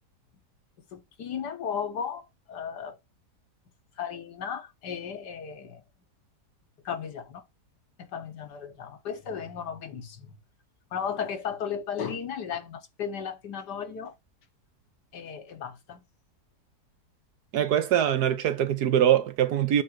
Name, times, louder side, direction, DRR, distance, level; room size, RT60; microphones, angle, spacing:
voice 1, 0.9-3.0 4.0-5.8 6.8-7.4 8.0-10.4 10.9-14.1 15.1-16.0, left 7 dB, 90° left, 1.8 m, -35 dB
voice 2, 17.5-19.8, right 10 dB, 75° right, 1.4 m, -23 dB
8.0 x 3.9 x 4.7 m
omnidirectional pair, 1.7 m